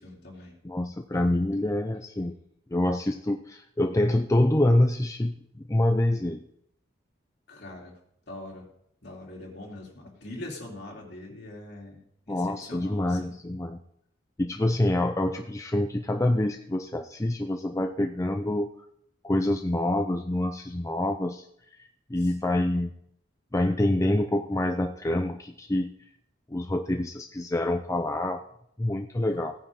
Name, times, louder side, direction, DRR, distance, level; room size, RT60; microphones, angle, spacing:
voice 1, 0.0-0.6 7.5-8.0 8.3-8.7 9.0-12.0 12.3-13.4 22.2-22.3 29.3-29.4, left 1 dB, 55° left, -1 dB, 3.2 m, -42 dB
voice 2, 0.6-2.4 2.7-5.4 5.7-6.4 12.3-13.8 14.4-18.7 19.2-21.4 22.1-22.9 23.5-25.9 26.5-28.4 28.8-29.5, left 1 dB, 15° left, 5 dB, 0.5 m, -26 dB
17.0 x 9.5 x 3.7 m, 0.73 s
head